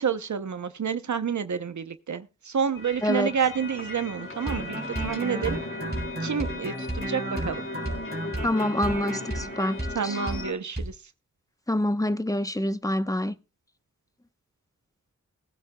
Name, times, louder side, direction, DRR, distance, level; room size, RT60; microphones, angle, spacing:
voice 1, 0.0-5.6 6.2-7.6 9.9-10.9, right 7 dB, 70° right, 0.8 m, -29 dB
sound 1, 2.7-10.5, left 2 dB, 45° left, 3.5 m, -36 dB
voice 2, 3.0-3.3 8.4-10.2 11.7-13.3, left 1 dB, 10° left, 0.9 m, -26 dB
sound 2, 4.4-10.0 10.3-10.4 10.8-10.9, right 1 dB, 35° right, 3.5 m, -33 dB
20.0 x 9.8 x 2.3 m
wide cardioid pair, 55°, 30 cm